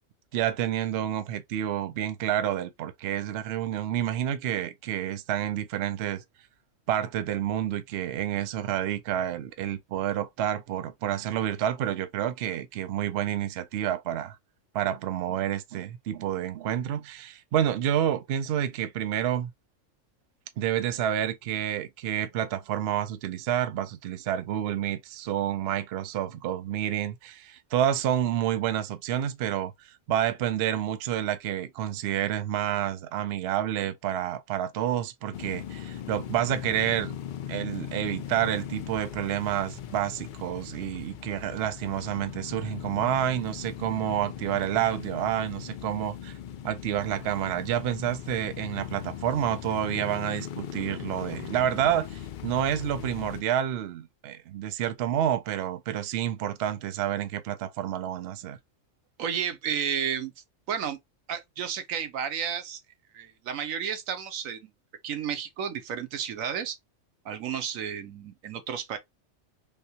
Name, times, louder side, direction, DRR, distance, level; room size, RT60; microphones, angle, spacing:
voice 1, 0.3-6.2 6.9-14.4 14.7-19.5 20.6-37.2 37.5-46.3 46.6-58.6, right 11 dB, 65° right, 0.7 m, -29 dB
sound 1, 35.3-53.4, left 10 dB, 70° left, 0.4 m, -39 dB
voice 2, 59.2-60.3 60.7-61.0 61.3-62.8 63.1-64.7 65.0-66.8 67.2-69.0, right 8 dB, 90° right, 1.2 m, -32 dB
3.5 x 2.7 x 2.7 m
omnidirectional pair, 1.4 m